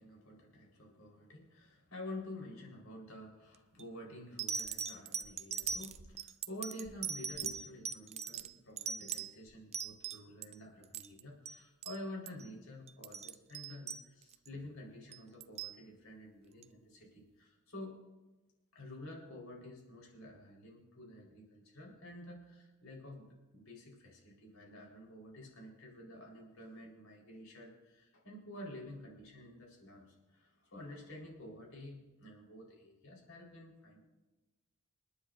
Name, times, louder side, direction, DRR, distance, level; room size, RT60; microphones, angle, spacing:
voice 1, 0.0-18.0 18.7-34.0, left 1 dB, 80° left, -1 dB, 4.2 m, -50 dB
sound 1, 3.5-3.8 4.4-10.5 10.8-11.6 11.8-12.0 12.3-12.5 12.9-14.5 15.1-15.8 16.6-16.7, right 7 dB, 30° right, 0.4 m, -40 dB
28.0 x 9.9 x 2.6 m, 1.1 s
head